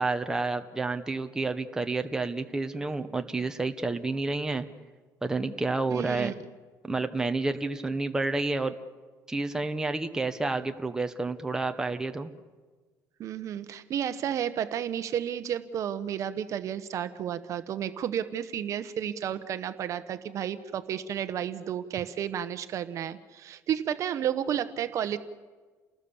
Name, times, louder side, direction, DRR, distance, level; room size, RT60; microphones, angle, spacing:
voice 1, 0.0-4.6 5.2-6.3 6.8-8.7 9.3-12.3, right 3 dB, 10° right, 6 dB, 1.2 m, -30 dB
voice 2, 5.9-6.3 13.2-25.2, right 9 dB, 50° right, 11 dB, 1.1 m, -32 dB
29.5 x 19.0 x 7.2 m, 1.4 s
cardioid pair, 140°, 7 cm